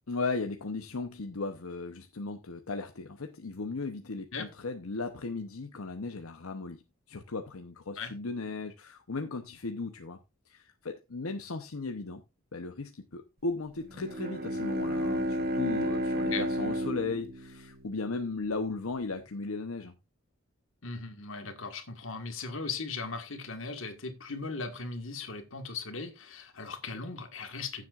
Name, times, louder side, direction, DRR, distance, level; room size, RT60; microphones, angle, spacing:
voice 1, 0.1-6.8 7.1-10.2 10.5-12.2 12.5-19.9, left 3 dB, 85° left, 0.9 m, -36 dB
Bowed string instrument, 13.9-18.5, equal, 45° right, 1.2 m, -32 dB
voice 2, 20.8-27.9, left 4 dB, 70° left, 1.7 m, -38 dB
15.5 x 7.6 x 2.5 m
head